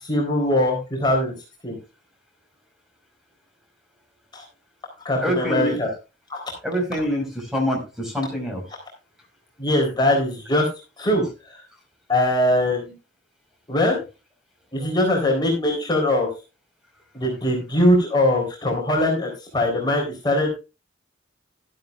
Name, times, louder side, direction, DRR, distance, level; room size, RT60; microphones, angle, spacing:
voice 1, 0.0-1.3 1.6-1.8 4.3-4.4 5.0-5.9 6.3-6.4 9.6-10.7 11.0-11.2 12.1-12.9 13.7-14.0 14.7-16.3 17.1-20.5, left 1 dB, 25° left, -1 dB, 3.8 m, -21 dB
voice 2, 5.2-5.8 6.6-8.6 14.8-15.0, equal, ahead, 1 dB, 5.1 m, -25 dB
13.0 x 11.5 x 2.4 m, 0.29 s
head